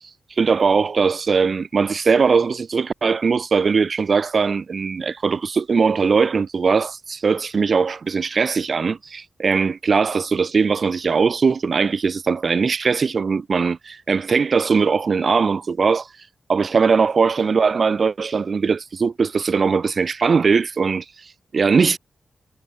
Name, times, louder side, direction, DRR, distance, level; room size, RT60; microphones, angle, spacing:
voice 1, 0.4-16.1 16.5-22.0, right 5 dB, 60° right, 7.9 m, -20 dB
cardioid pair, 50°, 0 cm